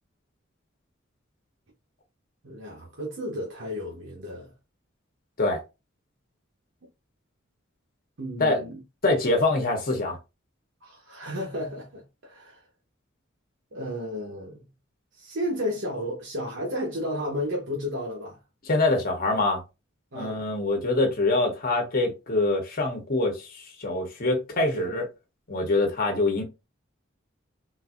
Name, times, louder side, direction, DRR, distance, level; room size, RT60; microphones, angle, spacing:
voice 1, 2.4-4.5 8.2-8.8 10.8-12.7 13.7-14.7 15.1-18.4 20.1-20.4 24.7-25.0, equal, 65° right, 1.0 m, -33 dB
voice 2, 9.0-10.2 18.7-19.6 20.1-25.0 25.5-26.4, left 2 dB, 50° left, 1.1 m, -24 dB
3.9 x 2.7 x 2.5 m
head